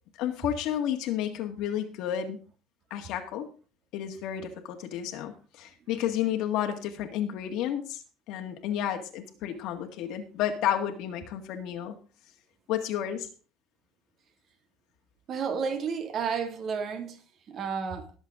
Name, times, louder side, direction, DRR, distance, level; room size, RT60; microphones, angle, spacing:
voice 1, 0.2-2.4 2.9-3.5 3.9-12.0 12.7-13.3, left 10 dB, 65° left, 1.8 m, -31 dB
voice 2, 15.3-18.1, right 6 dB, 40° right, 2.4 m, -32 dB
19.5 x 7.3 x 3.7 m
cardioid pair, 135°, 0 cm